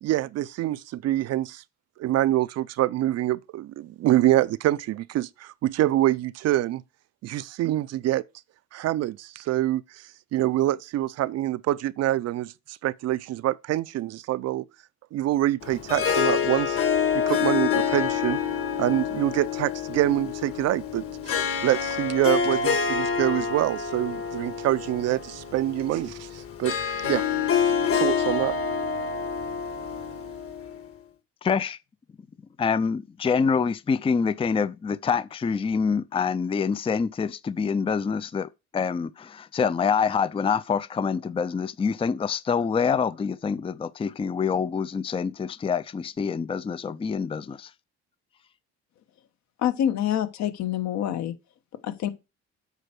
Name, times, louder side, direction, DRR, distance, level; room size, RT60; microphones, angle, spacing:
voice 1, 0.0-1.6 2.0-6.8 7.2-8.2 8.7-9.8 10.3-14.6 15.1-16.8 17.3-18.4 18.8-26.8 27.0-27.2 27.9-28.5, right 14 dB, 55° right, 0.6 m, -25 dB
Harp, 15.6-30.9, left 7 dB, 45° left, 1.8 m, -27 dB
voice 2, 31.4-31.8 32.6-47.7, left 6 dB, 20° left, 0.5 m, -26 dB
voice 3, 49.6-51.3 51.8-52.1, left 10 dB, 65° left, 1.3 m, -26 dB
8.2 x 4.5 x 6.0 m
supercardioid pair, 85°, 30 cm